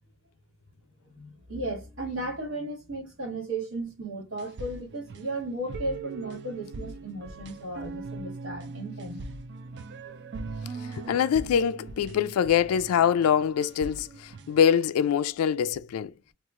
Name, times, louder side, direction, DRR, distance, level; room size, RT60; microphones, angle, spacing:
voice 1, 1.1-9.2 10.0-10.2 11.0-11.2, right 2 dB, 70° right, 1.6 m, -35 dB
sound 1, 4.3-14.7, right 3 dB, 55° right, 0.5 m, -41 dB
voice 2, 11.0-14.1 14.5-16.1, left 8 dB, 85° left, 0.3 m, -24 dB
3.0 x 2.4 x 3.5 m
head